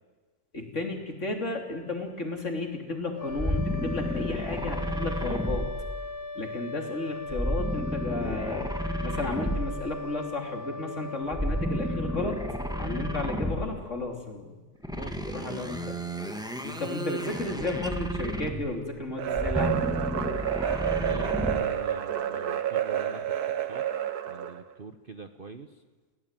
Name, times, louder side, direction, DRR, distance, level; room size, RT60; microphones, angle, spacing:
voice 1, 0.5-5.6 6.4-8.7 9.0-12.4 12.8-14.6 15.3-15.8 16.6-19.9, left 2 dB, 45° left, 3 dB, 3.6 m, -33 dB
sound 1, 3.1-14.1, left 3 dB, 15° left, 1.0 m, -39 dB
sound 2, 3.3-6.4 7.3-10.0 11.3-13.9 14.8-18.8 19.3-21.8, equal, ahead, 1.7 m, -32 dB
voice 2, 5.0-5.4 13.7-13.9 14.9-16.0 20.9-23.8 24.3-25.8, right 4 dB, 40° right, 8 dB, 1.1 m, -43 dB
sound 3, 19.2-24.6, right 10 dB, 70° right, 1.7 m, -29 dB
30.0 x 17.0 x 9.1 m, 1.3 s
omnidirectional pair, 1.7 m